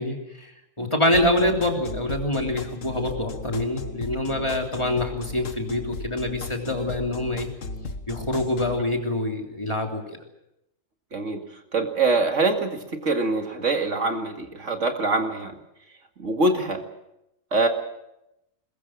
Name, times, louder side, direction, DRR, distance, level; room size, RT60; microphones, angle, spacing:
voice 1, 0.0-7.5 8.1-10.0, left 1 dB, 20° left, 2 dB, 3.3 m, -25 dB
sound 1, 1.1-8.8, left 3 dB, 80° left, 1.9 m, -36 dB
voice 2, 11.7-15.5 16.2-16.8 17.5-17.7, right 3 dB, 70° right, 4 dB, 2.5 m, -24 dB
22.0 x 21.5 x 7.4 m, 0.86 s
omnidirectional pair, 1.3 m